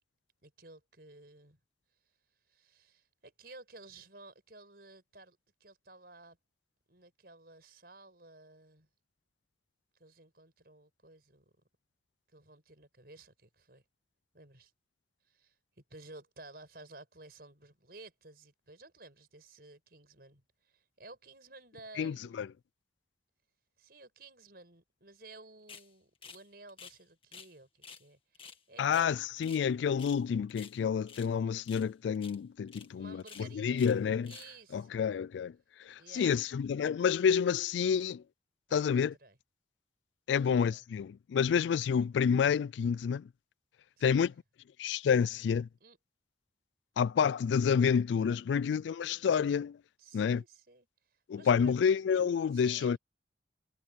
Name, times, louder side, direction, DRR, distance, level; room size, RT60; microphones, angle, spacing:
voice 1, 0.4-1.6 2.5-6.4 6.9-8.9 10.0-11.5 12.3-13.8 14.3-14.7 15.2-22.4 23.8-29.2 32.8-33.8 34.3-35.0 36.0-36.4 38.7-39.4 40.3-40.8 44.0-44.3 45.8-46.0 50.0-51.7 52.5-53.0, right 2 dB, 55° right, 6.1 m, -54 dB
voice 2, 22.0-22.5 28.8-34.3 34.7-38.2 38.7-39.1 40.3-43.3 44.0-44.3 44.8-45.7 47.0-49.8 50.1-50.4 51.3-53.0, left 7 dB, 80° left, 0.3 m, -29 dB
sound 1, 25.7-25.9 26.2-26.4 26.7-27.5 27.8-28.0 28.3-29.7 29.9-30.2 30.5-31.3 31.6-31.9 32.1-32.4 32.7-32.9 33.2-34.0 34.2-34.6, left 6 dB, 30° left, 2.0 m, -51 dB
head